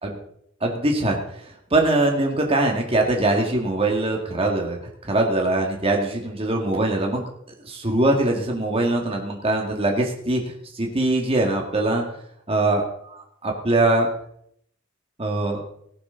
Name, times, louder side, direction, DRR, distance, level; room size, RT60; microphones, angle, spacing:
voice 1, 0.6-1.2 1.7-7.2 7.6-10.4 10.7-12.0 12.5-14.1 15.2-15.6, right 2 dB, 30° right, 1 dB, 2.2 m, -22 dB
17.5 x 11.5 x 4.0 m, 0.70 s
head